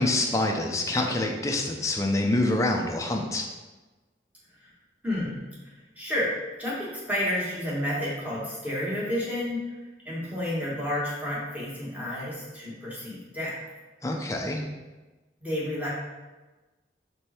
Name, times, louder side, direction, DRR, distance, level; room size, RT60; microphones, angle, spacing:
voice 1, 0.0-3.4 14.0-14.6, left 2 dB, 15° left, 1 dB, 0.6 m, -26 dB
voice 2, 5.0-5.4 5.9-6.3 6.6-9.6 10.0-13.5 15.4-15.9, left 1 dB, 10° right, -6 dB, 1.6 m, -30 dB
5.1 x 4.4 x 4.4 m, 1.2 s
head